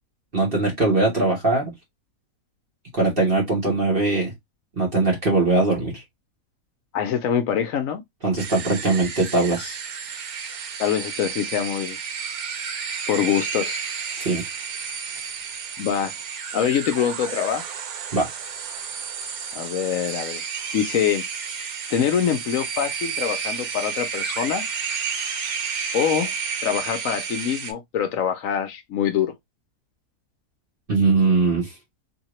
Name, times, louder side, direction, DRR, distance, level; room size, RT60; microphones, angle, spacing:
voice 1, 0.3-1.7 2.9-4.3 4.8-6.0 8.2-9.8 14.2-14.4 18.1-18.3 30.9-31.7, right 3 dB, 40° right, 1.2 m, -21 dB
voice 2, 6.9-8.0 10.8-12.0 13.1-13.8 15.8-16.1 16.5-17.6 19.5-20.4 20.7-21.2 21.9-24.6 25.9-26.3 26.6-29.3, left 8 dB, 70° left, 0.9 m, -24 dB
sound 1, 8.4-27.7, right 6 dB, 70° right, 1.2 m, -31 dB
2.9 x 2.8 x 2.9 m
omnidirectional pair, 1.7 m